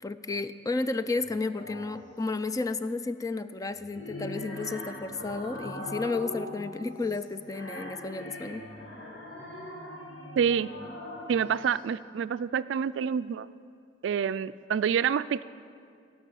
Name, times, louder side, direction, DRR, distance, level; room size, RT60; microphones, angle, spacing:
voice 1, 0.0-8.7, left 3 dB, 20° left, 11 dB, 0.3 m, -32 dB
sound 1, 1.1-2.1 3.7-11.7, left 1 dB, 70° left, 2.3 m, -41 dB
voice 2, 10.4-10.7 11.3-13.5 14.0-15.4, right 7 dB, 70° right, 15 dB, 0.3 m, -27 dB
17.0 x 6.1 x 7.5 m, 2.3 s
head